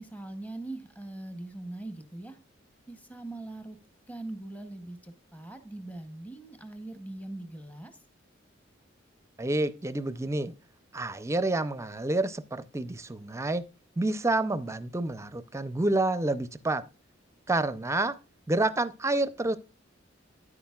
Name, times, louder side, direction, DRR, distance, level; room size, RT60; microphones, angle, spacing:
voice 1, 0.0-2.4 2.9-3.8 4.1-8.0, right 2 dB, 10° left, 0.9 m, -41 dB
voice 2, 9.4-10.5 10.9-13.6 14.0-16.8 17.5-18.2 18.5-19.6, right 2 dB, 15° right, 0.5 m, -28 dB
10.0 x 8.6 x 2.3 m
head